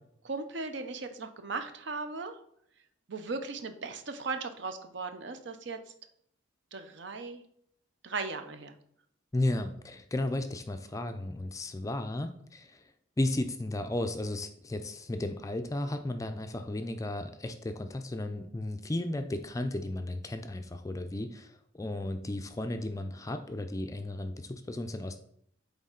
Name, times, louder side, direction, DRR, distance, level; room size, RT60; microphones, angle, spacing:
voice 1, 0.2-2.3 3.1-5.8 6.7-7.4 8.0-8.7, right 4 dB, 60° right, 8 dB, 0.7 m, -37 dB
voice 2, 9.3-12.8 13.2-25.2, left 1 dB, 15° left, 7 dB, 0.4 m, -34 dB
8.3 x 3.5 x 3.8 m, 0.70 s
head